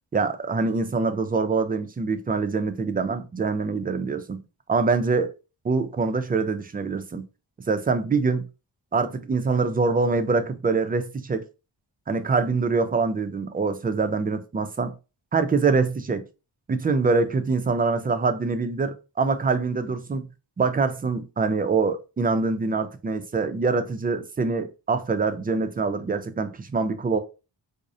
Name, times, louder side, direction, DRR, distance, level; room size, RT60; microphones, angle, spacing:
voice 1, 0.1-4.4 4.7-5.3 5.6-7.3 7.7-8.5 8.9-11.4 12.1-14.9 15.3-16.2 16.7-20.3 20.6-27.2, right 4 dB, 20° right, 0.3 m, -24 dB
2.4 x 2.0 x 2.5 m
cardioid pair, 55°, 46 cm